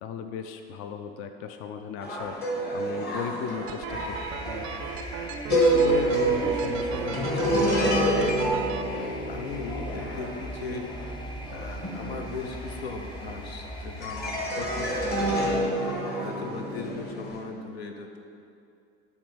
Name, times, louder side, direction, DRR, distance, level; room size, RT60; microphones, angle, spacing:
voice 1, 0.0-4.5, left 7 dB, 50° left, 7 dB, 0.5 m, -37 dB
sound 1, 2.0-13.6 14.0-17.4, right 1 dB, 30° left, 1.5 m, -28 dB
sound 2, 3.7-8.8, right 9 dB, 45° right, 0.4 m, -39 dB
sound 3, 3.9-15.6, equal, 15° left, 0.7 m, -40 dB
voice 2, 5.5-8.4 9.3-10.9 11.5-15.5 16.2-18.2, left 3 dB, 85° left, 3 dB, 0.7 m, -36 dB
8.2 x 3.2 x 5.0 m, 2.5 s
hypercardioid pair, 75°, 30 cm